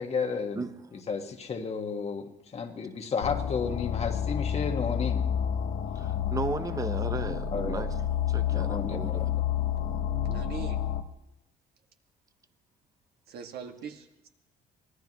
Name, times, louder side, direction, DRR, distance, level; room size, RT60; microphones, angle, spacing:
voice 1, 0.0-5.2 7.5-7.9 8.5-9.3, left 5 dB, 40° left, 4 dB, 1.5 m, -33 dB
sound 1, 3.2-11.0, left 9 dB, 75° left, 1.1 m, -29 dB
voice 2, 5.9-7.9 8.3-9.2, right 4 dB, 20° right, 9 dB, 0.9 m, -35 dB
voice 3, 10.3-10.8 13.3-14.3, right 7 dB, 70° right, 3 dB, 1.9 m, -41 dB
24.5 x 18.0 x 3.0 m, 0.91 s
cardioid pair, 110°, 17 cm